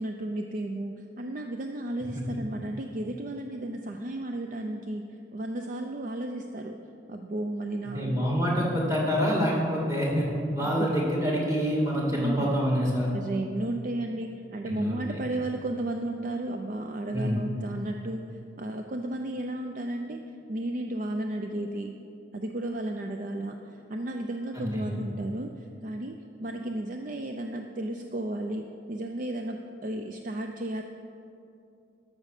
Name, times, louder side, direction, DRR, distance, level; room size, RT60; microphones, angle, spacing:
voice 1, 0.0-5.0 5.3-6.8 7.1-8.1 10.6-10.9 12.1-12.6 13.1-18.2 18.6-20.2 20.5-21.9 22.3-30.8, right 1 dB, 45° right, 4 dB, 0.5 m, -33 dB
voice 2, 7.9-10.3 10.5-13.1 14.6-15.2 17.1-17.5 24.5-25.0, equal, 15° right, -4 dB, 2.1 m, -26 dB
12.5 x 6.2 x 6.6 m, 2.7 s
head